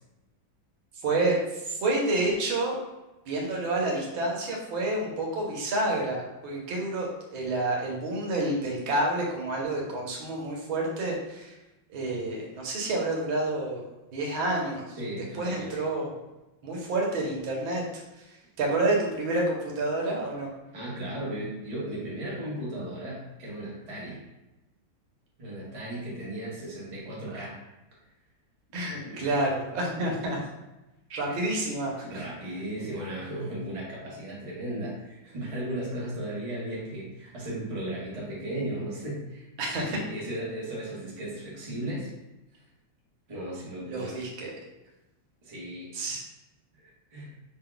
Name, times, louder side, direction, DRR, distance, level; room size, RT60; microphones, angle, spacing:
voice 1, 1.0-2.8 3.3-11.5 11.9-15.0 15.4-16.1 16.6-17.8 18.6-20.5 27.3-27.4 28.7-30.4 31.1-32.2 39.6-40.0 43.9-44.5 45.9-46.2, right 2 dB, 85° right, -1 dB, 1.7 m, -29 dB
voice 2, 15.0-15.8 20.7-24.2 25.4-27.6 29.0-29.4 31.2-31.5 32.0-39.5 39.9-42.1 43.3-44.2 45.4-45.9 47.1-47.3, right 1 dB, 20° right, -6 dB, 1.0 m, -36 dB
5.5 x 3.8 x 2.2 m, 1.0 s
omnidirectional pair, 2.2 m